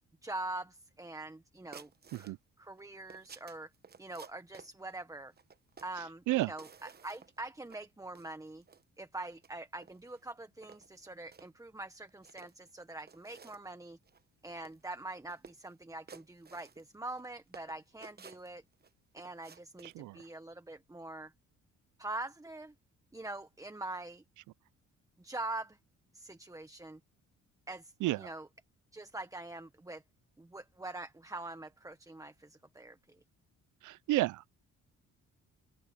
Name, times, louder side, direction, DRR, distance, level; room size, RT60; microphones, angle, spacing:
voice 1, 0.2-1.9 2.2-3.7 4.0-5.3 5.8-8.6 9.0-14.0 14.4-18.6 19.1-21.3 22.0-22.7 23.1-24.2 25.2-25.8 26.1-27.0 27.7-28.5 28.9-30.0 30.4-33.0, right 2 dB, 10° right, 1.4 m, -44 dB
sound 1, 1.7-2.3 2.8-4.7 5.4-6.0 6.5-7.4 7.7-7.8 8.1-8.8 9.3-9.5 9.8-10.2 10.6-11.5 12.1-12.7 13.1-13.7 14.0-14.2 14.5-15.0 15.3-15.7 16.1-17.3 17.5-18.9 19.2-20.0, right 6 dB, 30° right, 1.2 m, -54 dB
voice 2, 19.8-20.2 28.0-28.3 33.8-34.6, right 17 dB, 80° right, 0.5 m, -32 dB
open air
cardioid pair, 90°, 30 cm